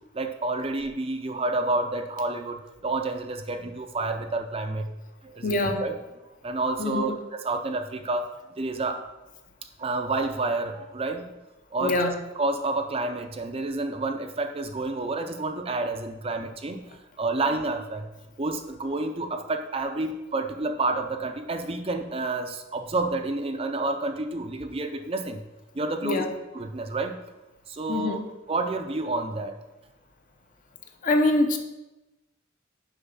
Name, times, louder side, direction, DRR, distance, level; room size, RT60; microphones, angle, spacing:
voice 1, 0.1-4.8 5.2-6.0 6.4-7.1 7.4-8.3 8.6-9.1 9.8-11.2 11.7-16.8 17.2-18.1 18.4-25.4 25.7-26.3 26.5-27.2 27.7-28.2 28.5-29.5, right 2 dB, 30° right, 6 dB, 0.5 m, -29 dB
voice 2, 5.4-5.9 6.8-7.1 11.8-12.2 26.0-26.3 27.9-28.2 31.0-31.6, left 2 dB, 40° left, 5 dB, 0.8 m, -24 dB
6.9 x 5.2 x 5.6 m, 1.0 s
head